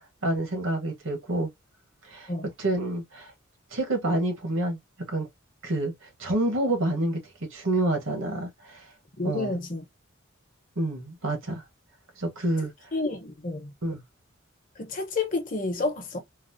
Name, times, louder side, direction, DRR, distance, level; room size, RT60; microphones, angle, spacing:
voice 1, 0.2-1.5 2.1-2.3 2.6-3.3 3.7-4.8 5.1-5.3 5.6-5.9 6.2-7.2 7.5-8.8 9.2-9.6 10.8-11.6 12.2-12.7 13.8-14.0, right 1 dB, 75° right, 1.2 m, -28 dB
voice 2, 9.2-9.8 12.9-13.7 14.8-16.2, left 3 dB, 40° left, 0.9 m, -30 dB
3.9 x 2.0 x 2.6 m
head